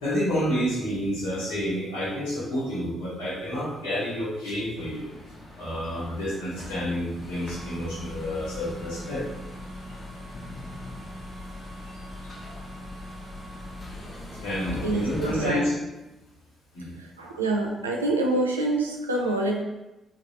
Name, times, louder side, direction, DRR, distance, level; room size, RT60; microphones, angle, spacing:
voice 1, 0.0-5.1 5.5-9.2 14.4-15.7 16.7-16.9, equal, 70° left, -8 dB, 1.1 m, -29 dB
sound 1, 4.7-15.5, left 1 dB, 35° left, 1.0 m, -40 dB
voice 2, 14.8-15.6 17.0-19.6, right 2 dB, 85° right, 0 dB, 0.3 m, -26 dB
3.1 x 2.7 x 2.9 m, 0.99 s
figure-of-eight pair, 40°, 0 cm